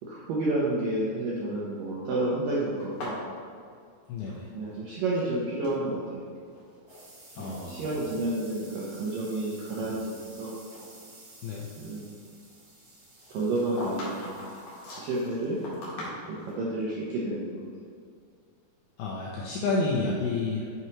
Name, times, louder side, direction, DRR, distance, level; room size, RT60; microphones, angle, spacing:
voice 1, 0.0-3.2 4.5-6.3 7.4-10.5 11.8-12.1 13.3-14.4 15.0-15.6 16.3-17.6, right 2 dB, 80° right, -6 dB, 2.0 m, -30 dB
sound 1, 2.8-4.8 5.0-5.8 6.5-7.0 7.3-7.6 8.2-8.3 8.9-10.4 10.7-10.9 13.1-16.6, left 1 dB, 50° left, 2.1 m, -41 dB
voice 2, 4.1-4.5 7.4-8.0 9.8-9.9 11.4-11.7 19.0-20.7, left 3 dB, 85° left, -3 dB, 2.2 m, -30 dB
sound 2, 6.4-17.4, right 2 dB, 55° right, 1.6 m, -53 dB
9.3 x 5.9 x 3.0 m, 2.3 s
omnidirectional pair, 5.3 m